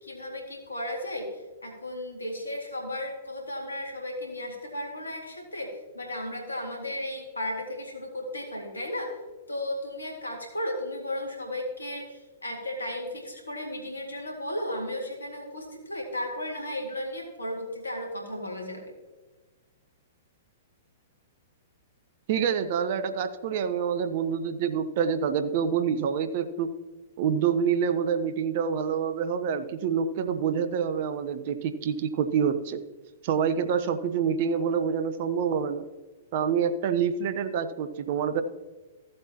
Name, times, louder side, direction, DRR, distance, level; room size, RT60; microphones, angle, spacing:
voice 1, 0.0-9.2 9.5-18.8, left 1 dB, 85° left, 2 dB, 2.1 m, -35 dB
voice 2, 22.3-26.7 27.2-32.8 33.2-35.8 36.3-38.4, right 7 dB, 50° right, 10 dB, 0.8 m, -27 dB
14.5 x 7.8 x 2.9 m, 1.2 s
figure-of-eight pair, 110°, 0 cm